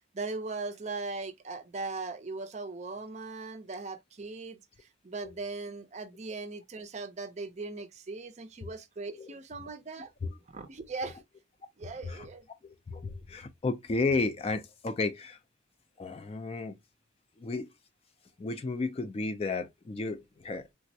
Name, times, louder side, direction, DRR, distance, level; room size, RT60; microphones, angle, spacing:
voice 1, 0.1-10.1 10.5-11.2 11.8-12.5, right 3 dB, 35° right, 0.4 m, -39 dB
voice 2, 12.6-15.4 16.0-16.8 17.4-17.7 18.4-20.6, left 3 dB, 30° left, 0.3 m, -33 dB
3.4 x 2.0 x 2.6 m
head